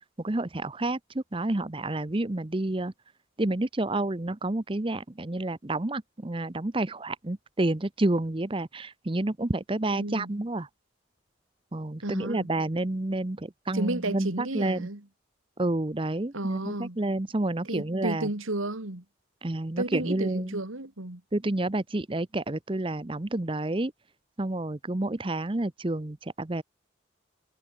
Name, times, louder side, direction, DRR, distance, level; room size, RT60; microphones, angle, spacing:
voice 1, 0.2-2.9 3.4-10.7 11.7-14.9 15.6-18.3 19.4-20.6 21.3-23.9 24.4-26.6, right 2 dB, 25° right, 0.7 m, -29 dB
voice 2, 9.9-10.3 12.0-12.5 13.7-15.0 16.3-17.0 17.6-19.0 19.8-21.2, right 2 dB, 85° right, 2.7 m, -32 dB
head